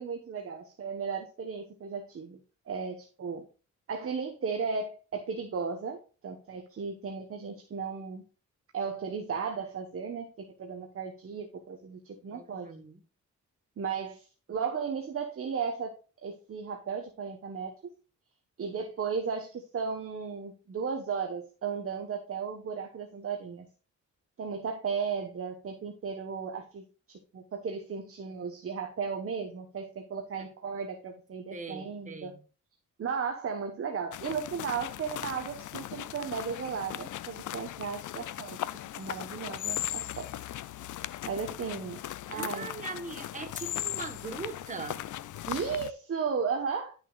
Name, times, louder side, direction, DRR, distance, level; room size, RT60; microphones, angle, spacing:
voice 1, 0.0-2.4 2.7-3.4 3.9-6.0 6.2-8.2 8.7-10.3 10.6-12.7 13.8-15.9 16.2-17.7 18.6-23.7 24.4-32.3 33.0-38.6 39.0-40.3 41.2-42.0 42.3-42.7 45.5-46.9, right 6 dB, 45° right, 4 dB, 1.2 m, -35 dB
voice 2, 12.3-13.0 31.5-32.4 42.3-45.1, right 3 dB, 25° right, 6 dB, 1.4 m, -40 dB
sound 1, 34.1-45.9, left 13 dB, 75° left, 0.5 m, -38 dB
11.0 x 6.5 x 2.4 m, 0.36 s
wide cardioid pair, 160°, 31 cm